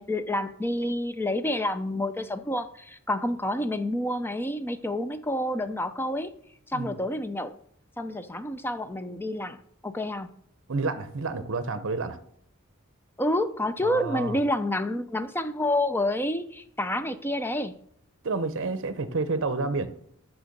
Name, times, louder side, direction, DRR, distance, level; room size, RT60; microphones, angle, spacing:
voice 1, 0.0-6.3 6.7-7.5 8.0-10.3 13.2-17.7, left 1 dB, 10° left, 0.5 m, -28 dB
voice 2, 10.7-12.2 13.8-14.4 18.2-19.9, right 3 dB, 60° right, 0.7 m, -29 dB
6.6 x 6.2 x 6.6 m
head